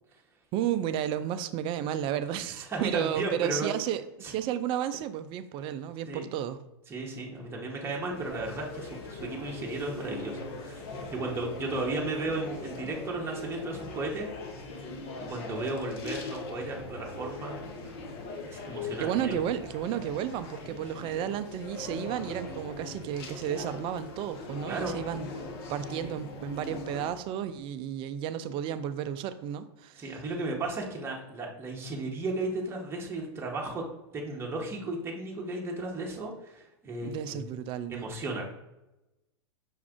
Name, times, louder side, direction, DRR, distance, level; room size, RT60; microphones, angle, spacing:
voice 1, 0.5-6.6 19.0-25.3 25.7-30.1 37.0-38.1, right 10 dB, 35° right, 12 dB, 0.3 m, -32 dB
voice 2, 2.4-3.7 4.2-4.3 6.1-6.3 6.9-10.8 11.1-14.3 15.2-18.0 18.4-19.4 24.7-25.0 26.0-26.1 30.0-33.8 34.1-37.4 37.9-38.5, right 2 dB, 15° right, -2 dB, 0.9 m, -35 dB
sound 1, 7.4-27.1, left 3 dB, 55° left, 0.9 m, -41 dB
5.9 x 2.4 x 3.6 m, 0.95 s
hypercardioid pair, 110°, 15 cm